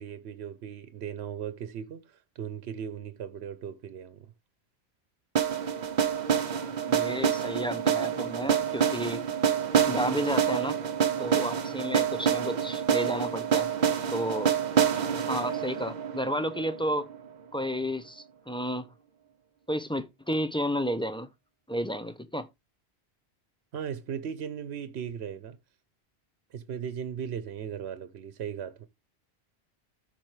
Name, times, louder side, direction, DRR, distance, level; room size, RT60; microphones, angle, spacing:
voice 1, 0.0-4.3 23.7-25.6 26.5-28.9, right 8 dB, 80° right, 1.0 m, -37 dB
sound 1, 5.4-17.3, right 8 dB, 50° right, 0.8 m, -27 dB
voice 2, 6.9-9.2 9.9-10.8 11.2-13.7 14.1-14.5 15.3-17.1 17.5-18.9 19.7-21.3 21.7-22.5, equal, 5° left, 0.5 m, -31 dB
13.5 x 4.5 x 3.2 m
omnidirectional pair, 1.1 m